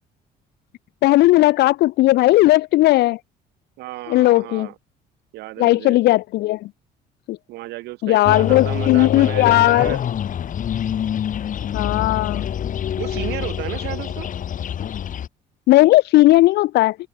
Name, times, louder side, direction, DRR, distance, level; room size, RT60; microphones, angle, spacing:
voice 1, 1.0-3.2 4.1-4.7 5.6-6.7 7.3-7.4 8.0-10.0 11.6-12.5 15.7-17.0, left 17 dB, 80° left, 1.4 m, -16 dB
voice 2, 3.8-4.7 5.3-6.0 7.5-10.0 13.0-14.3, right 19 dB, 85° right, 2.3 m, -32 dB
sound 1, 8.3-15.3, left 9 dB, 50° left, 4.8 m, -26 dB
cardioid pair, 110°, 17 cm